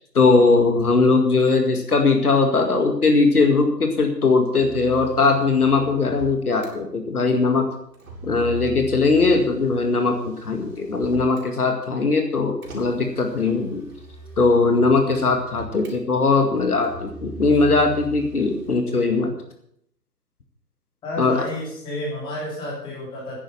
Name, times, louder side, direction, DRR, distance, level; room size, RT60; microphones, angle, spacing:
voice 1, 0.1-7.7 8.2-13.8 14.4-19.3 21.2-21.4, left 3 dB, 60° left, 5 dB, 2.2 m, -19 dB
Motor vehicle (road), 4.5-6.7 7.9-11.5 12.6-16.0 16.8-18.8, right 2 dB, 55° right, 4.5 m, -40 dB
voice 2, 21.0-23.4, left 1 dB, 10° left, -4 dB, 3.1 m, -31 dB
10.0 x 9.6 x 7.7 m, 0.72 s
figure-of-eight pair, 145°, 50 cm